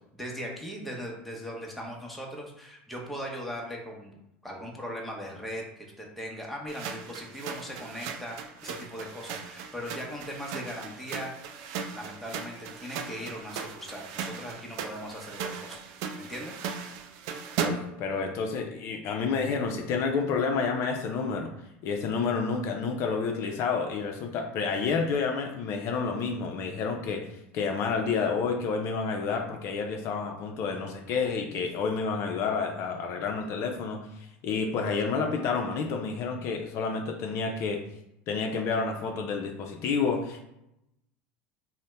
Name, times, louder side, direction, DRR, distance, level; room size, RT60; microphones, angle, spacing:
voice 1, 0.1-11.4 11.9-15.8 16.1-16.5, equal, ahead, -1 dB, 0.7 m, -39 dB
sound 1, 6.7-18.0, right 6 dB, 65° right, 0.3 m, -37 dB
voice 2, 17.6-21.5 21.8-27.3 27.5-34.1 34.4-37.8 38.3-40.4, left 5 dB, 55° left, 2 dB, 0.4 m, -29 dB
2.7 x 2.1 x 3.3 m, 0.84 s
supercardioid pair, 100°, 6 cm